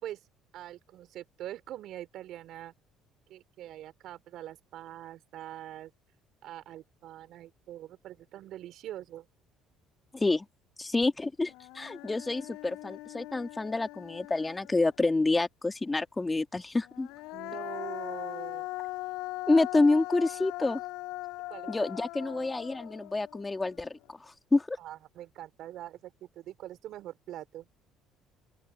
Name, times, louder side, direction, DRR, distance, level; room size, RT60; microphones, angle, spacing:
voice 1, 0.5-2.7 3.3-5.9 6.4-9.3 17.3-18.7 21.5-22.5 24.8-27.7, right 13 dB, 65° right, 3.6 m, -44 dB
voice 2, 10.1-10.5 10.8-17.1 19.5-20.8 21.7-24.8, left 3 dB, 20° left, 2.7 m, -28 dB
Human voice, 11.0-11.1 11.5-15.1 16.8-24.1, left 20 dB, 75° left, 3.1 m, -40 dB
open air
hypercardioid pair, 65°, 0 cm